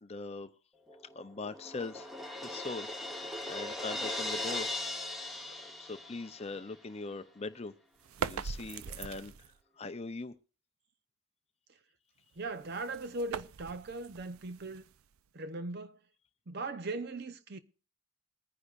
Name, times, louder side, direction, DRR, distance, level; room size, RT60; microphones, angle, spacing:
voice 1, 0.0-0.5 1.1-2.1 2.4-2.9 3.1-4.7 5.1-5.3 5.8-7.7 8.2-9.5 9.8-10.3, left 3 dB, 30° left, 0.5 m, -41 dB
Crash cymbal, 0.9-6.6, left 2 dB, ahead, 1.0 m, -39 dB
sound 1, 8.0-9.6 12.3-15.3, right 6 dB, 80° right, 0.5 m, -41 dB
voice 2, 12.4-14.8 15.3-16.0 16.5-17.6, right 2 dB, 50° right, 0.7 m, -39 dB
21.5 x 9.8 x 2.5 m
head